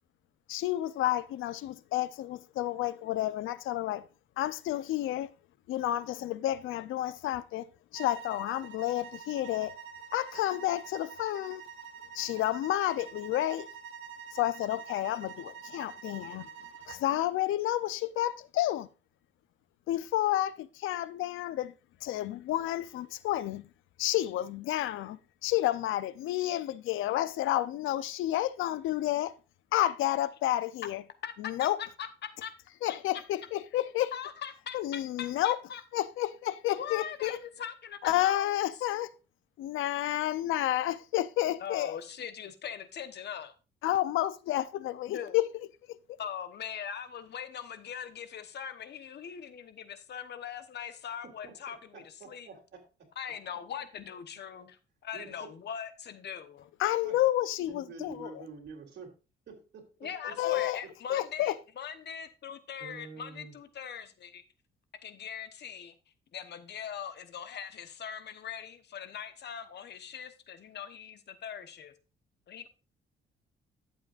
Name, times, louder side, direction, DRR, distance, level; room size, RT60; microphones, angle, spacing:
voice 1, 0.5-4.0 4.4-5.3 5.7-7.6 7.9-9.7 10.1-11.6 12.1-13.7 14.3-16.5 16.9-18.9 19.9-21.7 22.0-23.6 24.0-29.3 29.7-31.0 31.4-31.8 32.8-34.1 34.7-35.6 35.9-37.4 38.0-39.1 39.6-42.0 43.8-45.5 56.8-58.3 60.4-60.8 61.1-61.5, left 14 dB, 85° left, 0.6 m, -30 dB
sound 1, 7.9-17.1, right 7 dB, 80° right, 1.3 m, -47 dB
voice 2, 31.2-32.5 32.9-33.0 34.1-35.8 36.7-38.5 41.6-43.5 45.1-45.4 46.2-52.5 53.2-56.7 60.0-64.4 65.0-65.9 66.3-71.9 72.5-72.7, left 8 dB, 60° left, 1.1 m, -41 dB
voice 3, 51.2-53.1 55.1-55.5 57.0-57.2 57.7-59.1 59.5-60.4 62.8-63.5, right 5 dB, 60° right, 3.0 m, -48 dB
11.5 x 7.6 x 2.5 m
cardioid pair, 90°, 20 cm